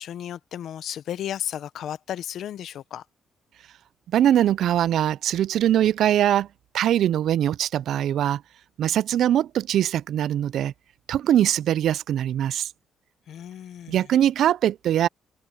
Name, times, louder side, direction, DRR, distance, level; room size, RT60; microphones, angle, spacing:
voice 1, 0.0-3.0 13.3-14.0, left 10 dB, 70° left, 0.9 m, -34 dB
voice 2, 4.1-6.5 6.7-8.4 8.8-10.7 11.1-12.7 13.9-15.1, right 11 dB, 75° right, 0.4 m, -22 dB
cardioid pair, 90°, 0 cm